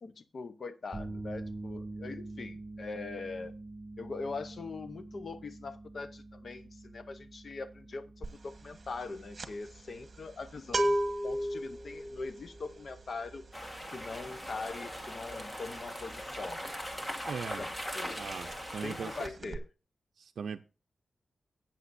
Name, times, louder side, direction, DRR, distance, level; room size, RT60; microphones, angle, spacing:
voice 1, 0.0-3.5 4.0-11.0 11.2-13.4 13.9-16.6 17.6-18.2 18.8-19.6, left 3 dB, 50° left, 0.8 m, -42 dB
sound 1, 0.9-16.8, right 2 dB, 15° right, 2.6 m, -47 dB
sound 2, 8.2-8.5 8.8-17.3 17.6-17.8 18.1-18.9 19.2-19.6, right 1 dB, 40° right, 1.2 m, -35 dB
sound 3, 13.5-19.3, equal, 15° left, 1.5 m, -40 dB
voice 2, 17.3-17.7 18.2-19.5 20.2-20.6, right 6 dB, 80° right, 0.5 m, -40 dB
14.0 x 8.8 x 2.6 m
wide cardioid pair, 140°, 0 cm